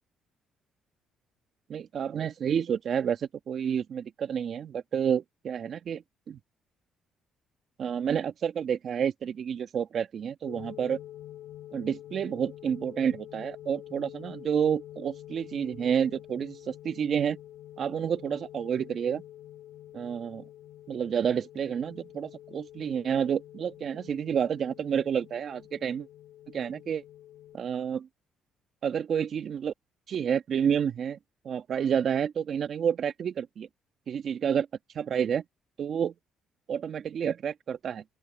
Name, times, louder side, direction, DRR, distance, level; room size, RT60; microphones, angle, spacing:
voice 1, 1.7-6.4 7.8-11.0 11.7-17.4 17.8-19.2 19.9-20.4 20.9-26.1 26.5-27.0 27.5-28.1 28.8-29.7 30.1-31.2 31.5-33.7 34.1-34.7 35.0-35.4 35.8-36.1 36.7-38.0, right 8 dB, 50° right, 1.7 m, -29 dB
sound 1, 10.4-27.6, left 13 dB, 80° left, 2.8 m, -47 dB
open air
cardioid pair, 105°, 0 cm